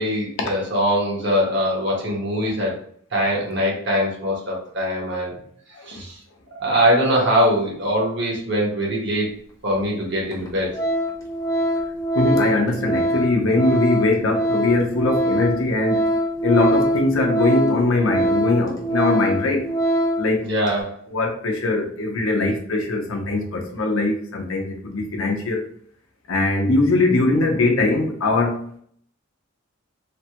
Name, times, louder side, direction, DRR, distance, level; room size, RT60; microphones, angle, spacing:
voice 1, 0.0-2.7 3.1-5.3 5.9-6.1 6.6-9.3 9.6-10.7 20.4-21.0, equal, 55° right, 1.1 m, -22 dB
Organ, 9.7-9.8 10.3-10.5 10.7-20.3 20.6-20.8, equal, 15° left, 0.5 m, -23 dB
voice 2, 12.1-16.1 16.4-19.7 20.2-20.5 21.1-25.6 26.3-28.6, left 2 dB, 90° left, 0.6 m, -21 dB
3.2 x 2.2 x 2.8 m
head